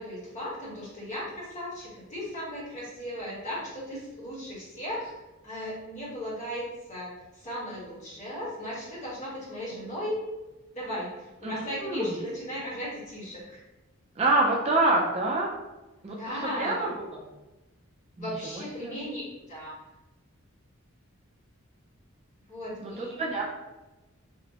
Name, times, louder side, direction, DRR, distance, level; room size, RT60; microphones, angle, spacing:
voice 1, 0.0-5.1 5.4-7.1 7.4-10.2 10.7-13.6 16.2-16.9 18.2-19.2 19.5-19.7 22.5-23.2, equal, 35° left, -7 dB, 1.1 m, -36 dB
voice 2, 11.4-12.1 14.2-15.5 16.0-17.1 18.2-18.3 18.5-18.9 22.8-23.4, right 2 dB, 30° right, -2 dB, 0.3 m, -27 dB
2.9 x 2.0 x 2.8 m, 1.0 s
head